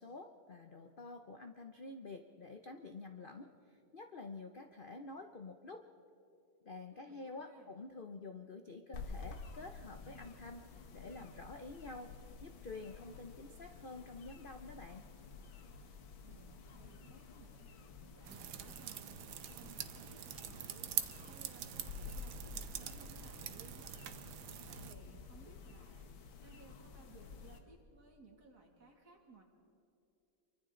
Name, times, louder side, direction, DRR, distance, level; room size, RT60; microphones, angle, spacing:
voice 1, 0.0-5.8 6.6-12.1 12.4-15.0, left 3 dB, 65° left, 6 dB, 0.5 m, -49 dB
voice 2, 6.9-7.7 16.2-24.0 24.6-29.4, right 3 dB, 55° right, 0 dB, 3.1 m, -61 dB
sound 1, 8.9-27.6, left 4 dB, 85° left, 2.1 m, -51 dB
sound 2, 18.2-24.9, right 11 dB, 90° right, 1.6 m, -44 dB
28.0 x 24.0 x 3.9 m, 2.8 s
omnidirectional pair, 2.1 m